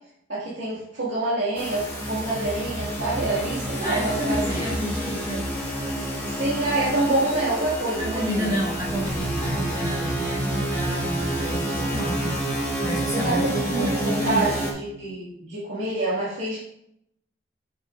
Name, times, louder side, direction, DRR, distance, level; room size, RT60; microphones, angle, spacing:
voice 1, 0.3-4.6 6.3-8.5 13.1-16.6, right 2 dB, 75° right, -9 dB, 2.1 m, -27 dB
sound 1, 1.6-14.7, right 1 dB, 10° left, 1.5 m, -28 dB
voice 2, 3.8-5.5 8.0-12.4 12.8-14.6, equal, 25° right, -7 dB, 2.3 m, -30 dB
8.4 x 7.1 x 2.5 m, 0.74 s
head